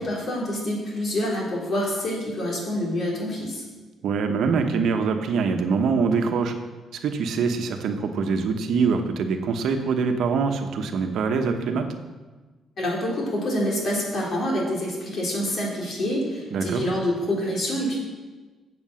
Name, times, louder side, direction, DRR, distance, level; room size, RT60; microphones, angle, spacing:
voice 1, 0.0-3.6 12.8-18.0, equal, 55° left, -3 dB, 3.7 m, -27 dB
voice 2, 4.0-6.5 6.9-11.9 16.5-16.9, right 5 dB, 75° right, 5 dB, 1.1 m, -24 dB
8.0 x 7.5 x 6.3 m, 1.3 s
cardioid pair, 90°, 0 cm